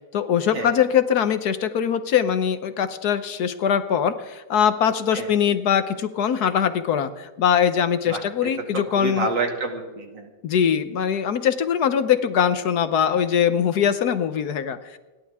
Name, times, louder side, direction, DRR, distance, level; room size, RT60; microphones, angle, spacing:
voice 1, 0.1-9.3 10.4-15.0, left 8 dB, 65° left, 11 dB, 1.3 m, -22 dB
voice 2, 8.9-10.3, right 3 dB, 80° right, 3 dB, 3.0 m, -27 dB
29.5 x 11.5 x 3.6 m, 1.3 s
omnidirectional pair, 1.9 m